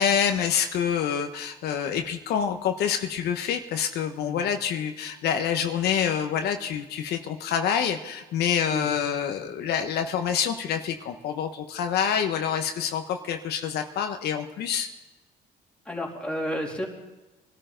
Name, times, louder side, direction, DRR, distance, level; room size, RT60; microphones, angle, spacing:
voice 1, 0.0-14.9, left 8 dB, 70° left, 6 dB, 1.2 m, -27 dB
voice 2, 15.8-16.8, equal, 5° left, -1 dB, 3.3 m, -31 dB
23.5 x 12.5 x 3.9 m, 1.1 s
cardioid pair, 110°, 17 cm